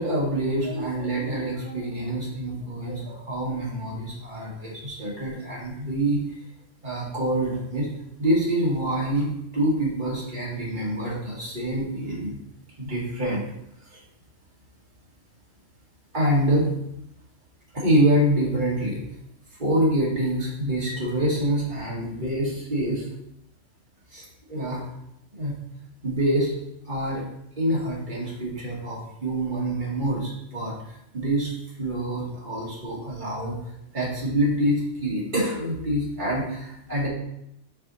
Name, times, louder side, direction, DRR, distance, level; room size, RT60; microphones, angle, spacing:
voice 1, 0.0-6.2 6.8-7.9 8.2-12.4 12.8-13.4 13.9-14.0 16.1-16.7 17.7-19.0 19.6-23.1 24.1-24.8 25.3-25.5 26.0-26.5 26.9-27.2 27.5-37.1, right 1 dB, 40° right, -5 dB, 2.0 m, -26 dB
5.0 x 4.7 x 4.1 m, 0.78 s
omnidirectional pair, 1.3 m